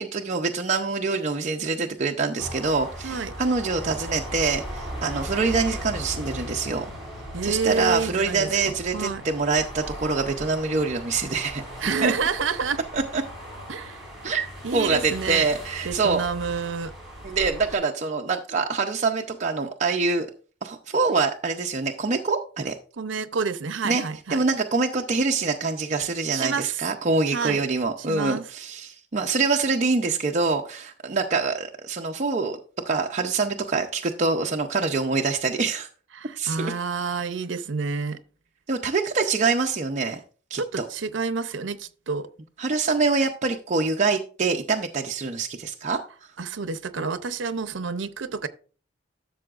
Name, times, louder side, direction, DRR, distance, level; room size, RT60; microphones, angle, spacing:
voice 1, 0.0-6.9 7.4-11.6 12.0-12.1 12.9-13.2 14.2-14.5 14.7-16.2 17.2-20.3 20.6-22.7 23.8-24.0 24.3-32.6 32.9-35.9 36.4-36.7 38.7-40.2 40.5-40.8 42.6-46.0, right 4 dB, 40° right, 0.6 m, -25 dB
sound 1, 2.4-17.8, equal, ahead, 4.9 m, -38 dB
voice 2, 3.0-3.4 7.3-9.2 11.8-12.8 13.7-14.1 14.6-15.5 15.8-16.9 23.0-24.4 26.3-26.8 27.3-27.6 28.1-28.4 36.1-38.2 40.6-42.3 46.4-48.5, right 4 dB, 80° right, 0.6 m, -29 dB
12.5 x 6.9 x 2.4 m
head